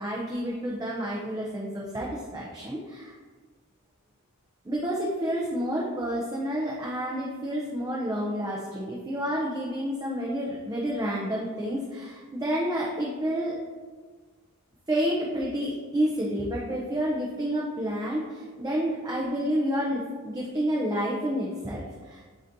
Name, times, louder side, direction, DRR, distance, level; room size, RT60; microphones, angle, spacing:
voice 1, 0.0-3.1 4.6-13.6 14.9-22.2, equal, 15° right, -4 dB, 0.5 m, -29 dB
7.7 x 2.7 x 2.6 m, 1.5 s
head